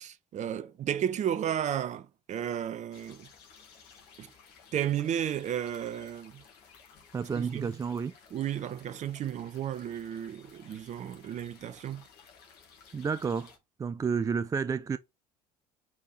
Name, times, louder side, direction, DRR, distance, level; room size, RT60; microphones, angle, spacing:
voice 1, 0.0-3.3 4.2-4.3 4.7-6.4 7.4-7.7 8.3-12.0, right 10 dB, 35° right, 0.8 m, -33 dB
sound 1, 2.9-13.6, left 6 dB, 55° left, 2.1 m, -56 dB
voice 2, 7.1-8.1 12.9-13.5 13.8-15.0, right 5 dB, 15° right, 0.4 m, -30 dB
6.2 x 5.4 x 3.0 m
figure-of-eight pair, 60°, 20 cm